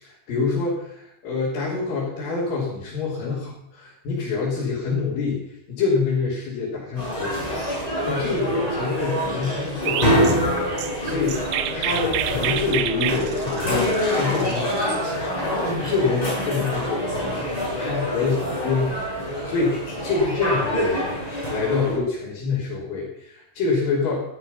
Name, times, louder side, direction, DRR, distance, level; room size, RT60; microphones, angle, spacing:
voice 1, 0.0-5.4 5.7-10.3 10.6-21.1 21.5-24.2, left 4 dB, 65° left, -6 dB, 5.1 m, -26 dB
sound 1, 7.0-22.0, equal, 10° left, 7.1 m, -26 dB
Chirp tweet, 9.9-15.0, right 12 dB, 80° right, 1.7 m, -29 dB
15.0 x 12.0 x 5.7 m, 0.76 s
omnidirectional pair, 4.4 m